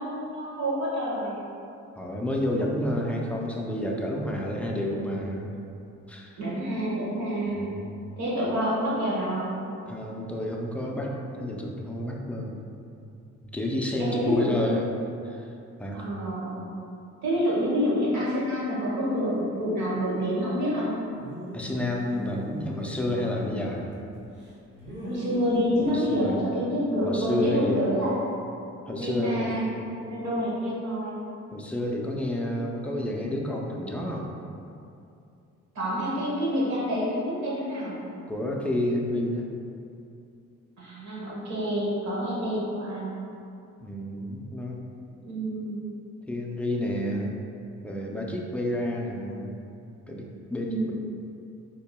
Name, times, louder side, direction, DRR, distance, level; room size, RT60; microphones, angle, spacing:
voice 1, 0.0-1.4 6.4-7.7 8.2-9.6 14.0-14.8 15.9-16.6 17.2-20.9 25.0-28.4 29.0-29.6 30.0-31.2 35.7-38.0 40.8-43.2 45.2-45.8 50.5-50.9, equal, 70° right, -6 dB, 1.2 m, -28 dB
voice 2, 1.9-5.5 6.1-6.4 7.5-7.9 9.9-12.6 13.5-14.8 15.2-15.5 15.8-16.0 21.5-23.8 25.9-26.4 27.0-27.8 28.9-29.6 31.5-34.3 38.3-39.5 43.8-44.8 46.3-47.4 47.8-49.5 50.1-50.9, left 1 dB, 5° left, -1 dB, 0.4 m, -30 dB
sound 1, 21.2-24.0 24.4-25.9, left 1 dB, 40° right, 1.1 m, -38 dB
4.3 x 2.9 x 2.2 m, 2.6 s
cardioid pair, 90°, 30 cm